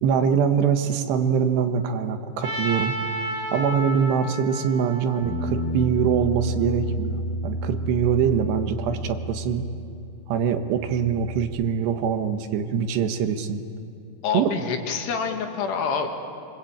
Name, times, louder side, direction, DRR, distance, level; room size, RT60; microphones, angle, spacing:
voice 1, 0.0-3.0 3.5-9.6 10.3-13.6 14.3-14.5, right 7 dB, 90° right, 7 dB, 3.5 m, -23 dB
Trumpet, 2.4-6.5, right 1 dB, 20° right, 2.8 m, -32 dB
Bass guitar, 5.2-10.0 10.3-11.5, right 1 dB, 35° right, 8.8 m, -31 dB
voice 2, 14.2-16.1, left 6 dB, 80° left, 4 dB, 4.1 m, -27 dB
26.5 x 24.5 x 8.8 m, 2.6 s
omnidirectional pair, 4.7 m